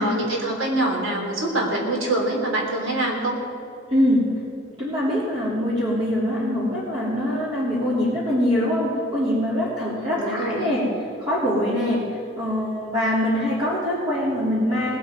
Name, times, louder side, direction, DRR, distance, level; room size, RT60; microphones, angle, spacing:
voice 1, 0.0-3.4 9.9-10.7, right 1 dB, 75° right, 0 dB, 3.1 m, -25 dB
voice 2, 3.9-4.2 4.8-10.9 11.2-12.0 12.4-15.0, left 1 dB, 25° right, -10 dB, 3.2 m, -23 dB
19.0 x 8.5 x 5.2 m, 2.4 s
head